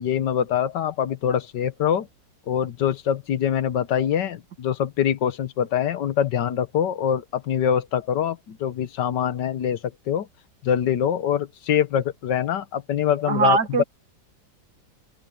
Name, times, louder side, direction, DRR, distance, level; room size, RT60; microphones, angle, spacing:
voice 1, 0.0-2.1 2.5-10.3 10.6-13.8, left 9 dB, 75° left, 1.6 m, -24 dB
voice 2, 13.3-13.8, right 4 dB, 70° right, 2.3 m, -20 dB
open air
omnidirectional pair, 1.9 m